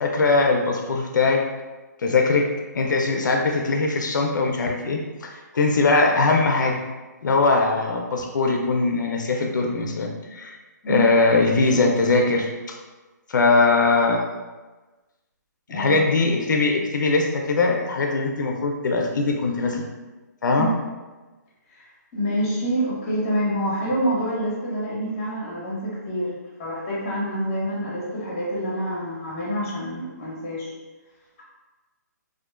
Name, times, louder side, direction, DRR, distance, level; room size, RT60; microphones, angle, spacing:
voice 1, 0.0-1.4 2.0-2.5 2.7-6.8 7.2-10.6 10.9-12.8 13.3-14.2 15.7-19.9 20.4-20.7, left 3 dB, 85° left, 1 dB, 0.4 m, -21 dB
voice 2, 15.7-16.0 20.6-20.7 21.7-21.9 22.1-30.7, equal, 20° left, -7 dB, 0.7 m, -27 dB
2.4 x 2.1 x 2.3 m, 1.2 s
hypercardioid pair, 175°, 10 cm